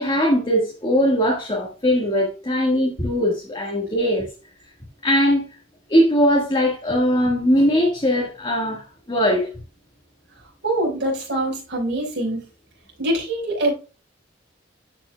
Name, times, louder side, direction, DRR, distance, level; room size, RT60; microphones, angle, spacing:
voice 1, 0.0-4.3 5.0-5.4 5.9-9.5, equal, 25° left, 1.7 m, -20 dB
voice 2, 10.6-12.4 13.0-13.7, right 1 dB, 60° right, 4.8 m, -24 dB
13.0 x 5.9 x 2.3 m
head